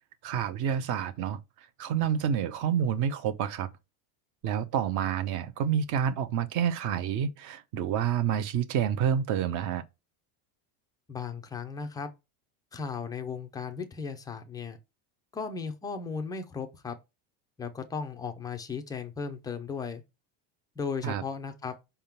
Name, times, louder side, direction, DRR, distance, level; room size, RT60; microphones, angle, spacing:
voice 1, 0.2-1.4 1.8-3.7 4.4-9.8 21.0-21.2, right 8 dB, 40° right, 0.8 m, -28 dB
voice 2, 11.1-12.1 12.7-14.8 15.3-16.9 17.6-20.0 20.8-21.7, left 5 dB, 10° left, 0.3 m, -36 dB
5.6 x 3.6 x 5.8 m
supercardioid pair, 150°, 45 cm